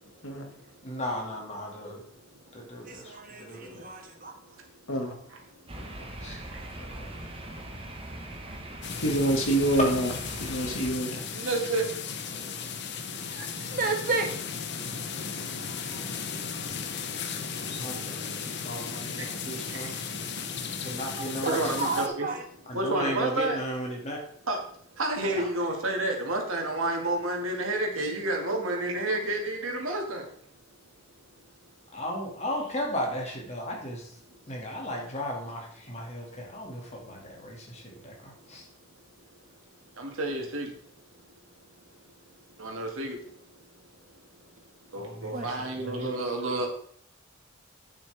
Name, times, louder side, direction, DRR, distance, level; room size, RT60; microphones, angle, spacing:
voice 1, 0.8-2.0 2.5-3.9 5.8-6.4 6.8-7.2 12.3-12.5 17.8-19.9 20.8-21.6 22.7-24.2 25.3-25.4 31.9-34.0 34.5-38.6 45.0-45.5 45.7-46.1, equal, 35° left, 0 dB, 2.1 m, -36 dB
voice 2, 2.9-4.3 13.7-14.3 21.2-22.4 25.2-25.3 45.3-45.5, right 3 dB, 45° right, 3 dB, 1.5 m, -31 dB
sound 1, 5.7-10.9, right 1 dB, 25° right, 1.2 m, -41 dB
sound 2, 8.8-22.1, left 6 dB, 55° left, 0.8 m, -36 dB
voice 3, 9.0-10.1 10.4-11.2, right 1 dB, 90° left, 3 dB, 1.9 m, -26 dB
voice 4, 11.3-11.8 19.7-19.8 21.5-22.3 22.7-23.6 24.5-24.6 25.0-30.2 40.0-40.7 42.6-43.2 44.9-46.7, right 2 dB, 85° right, 1 dB, 2.0 m, -29 dB
8.8 x 7.4 x 3.4 m, 0.62 s
head